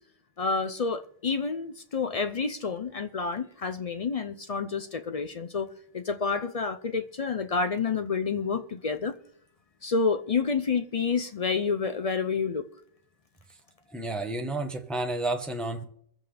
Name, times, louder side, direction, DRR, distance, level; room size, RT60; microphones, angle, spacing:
voice 1, 0.4-9.2 9.8-12.7, left 5 dB, 55° left, 0.4 m, -29 dB
voice 2, 13.9-15.9, right 2 dB, ahead, 0.9 m, -31 dB
23.0 x 7.9 x 3.4 m
omnidirectional pair, 1.4 m